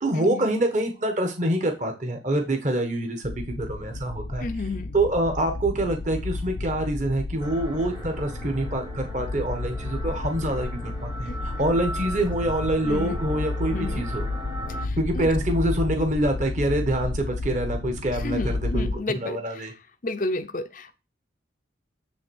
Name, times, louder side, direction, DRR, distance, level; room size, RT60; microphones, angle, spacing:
voice 1, 0.0-3.3 3.6-4.5 4.9-14.3 15.0-19.7, right 1 dB, 40° right, 4 dB, 1.3 m, -26 dB
sound 1, 3.2-19.0, left 2 dB, 80° left, 0.9 m, -32 dB
voice 2, 4.4-4.9 11.3-11.8 12.8-13.2 13.7-14.0 14.8-15.3 18.2-19.4 20.0-21.0, left 2 dB, 45° left, 9 dB, 0.7 m, -32 dB
sound 2, 7.4-14.9, right 1 dB, 20° right, 1.1 m, -38 dB
9.9 x 3.6 x 6.3 m, 0.29 s
head